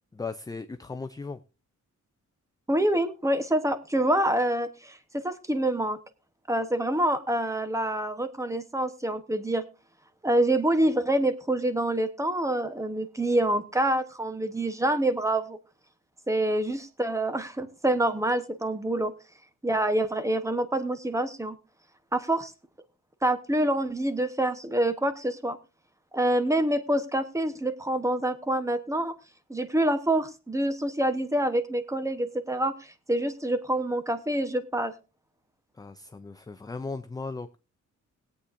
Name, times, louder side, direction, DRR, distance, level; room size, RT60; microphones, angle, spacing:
voice 1, 0.1-1.4 35.8-37.6, left 3 dB, 15° left, 0.4 m, -37 dB
voice 2, 2.7-6.0 6.5-9.6 10.2-15.6 16.3-19.1 19.6-21.6 22.1-22.5 23.2-25.6 26.1-29.2 29.5-34.9, right 1 dB, 10° right, 1.0 m, -26 dB
21.0 x 8.4 x 2.6 m
wide cardioid pair, 140°, 30 cm